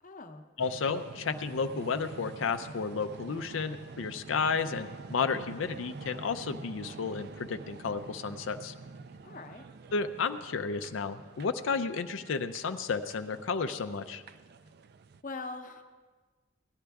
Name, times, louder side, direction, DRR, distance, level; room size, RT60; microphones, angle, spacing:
voice 1, 0.0-0.5 9.2-9.7 14.6-14.7 15.2-15.8, left 3 dB, 40° left, 6 dB, 0.8 m, -42 dB
voice 2, 0.6-8.7 9.9-14.2, left 5 dB, 75° left, 9 dB, 0.5 m, -32 dB
sound 1, 0.6-15.2, right 4 dB, 50° right, 0.3 m, -47 dB
17.5 x 11.0 x 3.5 m, 1.4 s
head